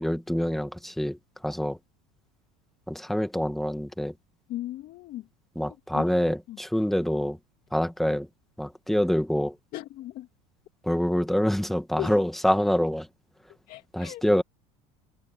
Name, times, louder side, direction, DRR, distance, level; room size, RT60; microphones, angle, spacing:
voice 1, 0.0-1.8 2.9-4.1 5.6-7.4 7.7-8.3 8.6-9.6 10.8-13.1 13.9-14.4, equal, ahead, 2.0 m, -26 dB
voice 2, 4.5-5.3 5.6-6.0 6.5-6.6 9.7-10.3 12.0-12.2 13.7-14.2, left 15 dB, 60° left, 2.4 m, -37 dB
supercardioid pair, 100°, 17 cm